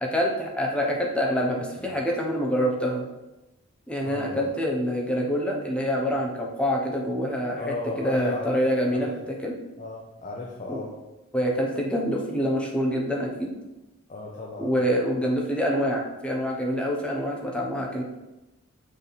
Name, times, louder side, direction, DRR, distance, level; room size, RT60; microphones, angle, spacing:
voice 1, 0.0-3.0 3.9-7.6 8.0-9.5 10.7-10.8 11.3-13.6 14.6-18.0, equal, 5° left, -1 dB, 0.9 m, -26 dB
voice 2, 4.0-4.5 7.6-9.1 9.8-10.9 14.1-14.7, left 2 dB, 35° left, -1 dB, 0.7 m, -35 dB
6.6 x 3.6 x 4.1 m, 1.0 s
head